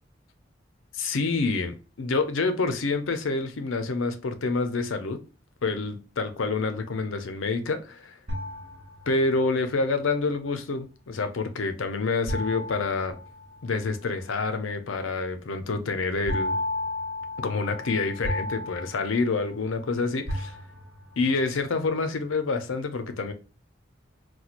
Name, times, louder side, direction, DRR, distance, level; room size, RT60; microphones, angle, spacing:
voice 1, 0.9-5.2 5.6-8.1 9.1-13.2 13.6-16.6 17.4-20.6 21.2-23.3, left 3 dB, 90° left, 0.6 m, -27 dB
sound 1, 8.3-9.5 12.3-13.9 16.3-19.9 20.3-21.2, left 1 dB, 85° right, 1.0 m, -33 dB
4.3 x 2.3 x 2.4 m
head